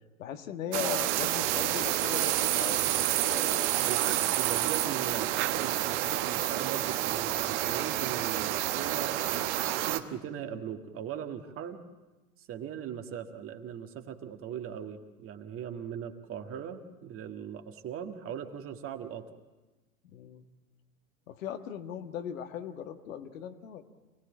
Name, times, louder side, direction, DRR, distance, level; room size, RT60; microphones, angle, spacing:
voice 1, 0.2-3.7 20.0-20.4 21.3-23.8, left 9 dB, 60° left, 7 dB, 1.6 m, -39 dB
sound 1, 0.7-10.0, right 13 dB, 50° right, 1.2 m, -29 dB
voice 2, 3.8-11.8 12.4-19.3, right 9 dB, 30° right, 5 dB, 1.7 m, -39 dB
27.5 x 18.0 x 7.3 m, 1.1 s
figure-of-eight pair, 95°, 44 cm